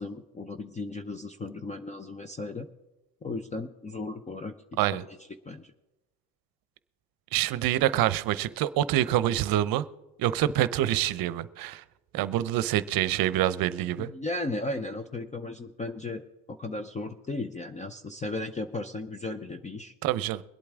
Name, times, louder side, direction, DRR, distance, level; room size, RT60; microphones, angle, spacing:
voice 1, 0.0-2.7 3.2-4.5 4.9-5.2 5.5-5.7 14.0-16.2 16.5-19.9, left 2 dB, 15° left, 9 dB, 0.6 m, -35 dB
voice 2, 7.3-9.8 10.2-11.8 12.1-14.1 20.0-20.4, right 13 dB, 55° right, 16 dB, 0.7 m, -26 dB
22.5 x 8.5 x 3.6 m, 1.1 s
supercardioid pair, 110°, 41 cm